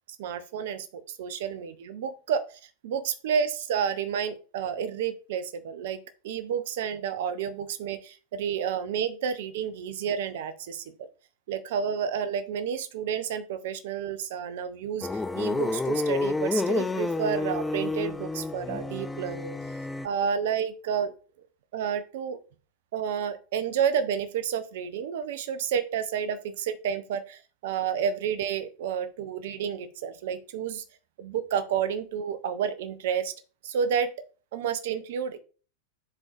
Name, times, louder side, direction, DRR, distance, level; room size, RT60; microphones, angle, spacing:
voice 1, 0.2-11.1 11.5-19.6 20.0-21.1 21.7-22.4 22.9-30.8 31.2-33.3 33.6-34.1 34.5-35.4, right 7 dB, 55° right, 12 dB, 0.6 m, -30 dB
sound 1, 15.0-20.1, left 3 dB, 10° left, 0.4 m, -29 dB
10.5 x 3.8 x 2.5 m, 0.37 s
figure-of-eight pair, 90°, 0 cm